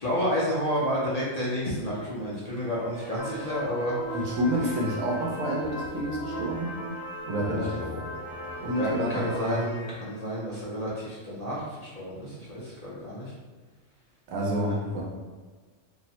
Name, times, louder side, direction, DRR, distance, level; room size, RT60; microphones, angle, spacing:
voice 1, 0.0-4.2 7.5-7.9 8.7-13.3 14.4-14.7, equal, 45° left, -7 dB, 0.5 m, -30 dB
sound 1, 2.6-10.5, right 1 dB, 50° right, 0.6 m, -45 dB
sound 2, 3.2-9.4, equal, 75° left, 1.1 m, -38 dB
voice 2, 4.1-6.7 7.2-7.9 8.6-9.6 14.3-15.0, equal, 85° right, -2 dB, 1.1 m, -29 dB
2.8 x 2.1 x 2.8 m, 1.4 s
omnidirectional pair, 1.4 m